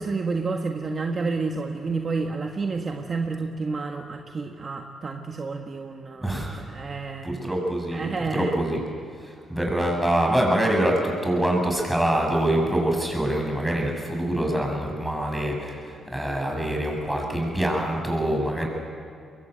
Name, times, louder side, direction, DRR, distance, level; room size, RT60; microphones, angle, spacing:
voice 1, 0.0-7.4 7.9-8.6, right 4 dB, 35° right, 3 dB, 1.6 m, -30 dB
voice 2, 6.2-6.6 7.2-8.1 8.3-8.8 9.2-18.7, right 1 dB, 5° right, 0 dB, 7.1 m, -25 dB
24.0 x 22.0 x 9.3 m, 2.4 s
cardioid pair, 90°, 0 cm